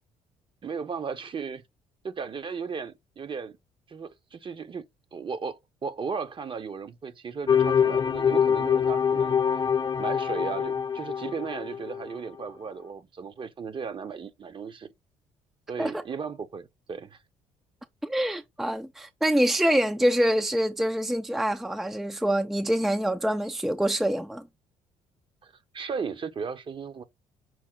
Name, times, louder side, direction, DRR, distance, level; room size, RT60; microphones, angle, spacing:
voice 1, 0.6-1.6 2.0-3.6 3.9-9.4 10.0-14.9 15.7-17.2 25.4-27.0, right 5 dB, 40° right, 0.8 m, -36 dB
sound 1, 7.5-12.1, left 7 dB, 35° left, 0.7 m, -24 dB
voice 2, 18.0-24.4, equal, 5° right, 0.4 m, -25 dB
6.1 x 2.1 x 3.7 m
supercardioid pair, 75°, 14 cm